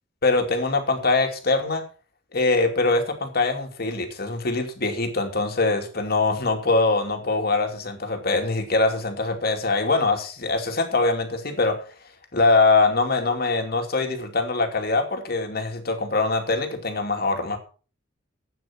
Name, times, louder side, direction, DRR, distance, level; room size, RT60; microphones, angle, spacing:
voice 1, 0.2-1.8 2.3-11.8 12.3-17.6, left 3 dB, 50° left, 5 dB, 2.6 m, -23 dB
12.5 x 9.1 x 6.0 m, 0.38 s
head